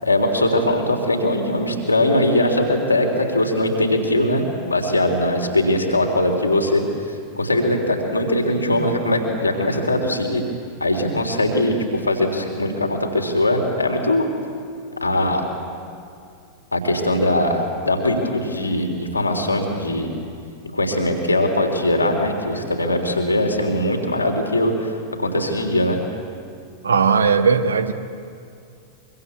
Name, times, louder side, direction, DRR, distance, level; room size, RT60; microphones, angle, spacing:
voice 1, 0.0-6.8 7.4-10.4 10.8-14.3 15.0-15.4 16.7-20.1 20.7-24.9 25.2-26.0, left 1 dB, 80° left, 2 dB, 3.6 m, -20 dB
voice 2, 26.8-27.9, right 5 dB, 70° right, 9 dB, 1.4 m, -17 dB
24.5 x 24.5 x 8.5 m, 2.4 s
figure-of-eight pair, 90°, 0 cm